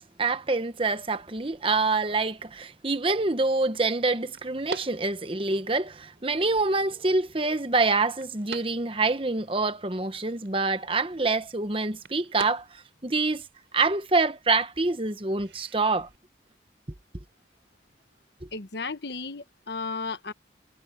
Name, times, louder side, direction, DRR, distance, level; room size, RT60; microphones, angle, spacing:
voice 1, 0.0-13.4 13.7-16.1, right 3 dB, 30° right, 1.0 m, -26 dB
Tennis Ball being hit, 0.8-16.2, right 4 dB, 85° right, 4.7 m, -48 dB
voice 2, 18.5-20.3, left 4 dB, 70° left, 1.2 m, -34 dB
head